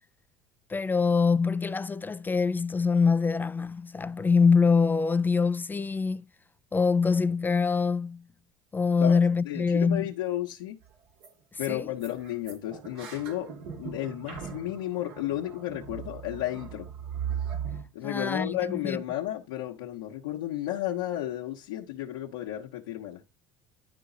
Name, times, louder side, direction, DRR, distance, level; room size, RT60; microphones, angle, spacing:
voice 1, 0.7-6.2 6.7-8.2 8.7-10.1 11.5-11.9 18.0-19.0, left 5 dB, 20° left, 0.3 m, -24 dB
voice 2, 9.4-10.8 11.6-13.5 13.8-16.9 17.9-23.2, left 13 dB, 75° left, 1.0 m, -33 dB
sound 1, 10.8-10.9 11.2-11.3 11.6-11.7 12.0-17.8, right 8 dB, 70° right, 2.1 m, -38 dB
11.0 x 3.9 x 3.9 m
hypercardioid pair, 70°, 10 cm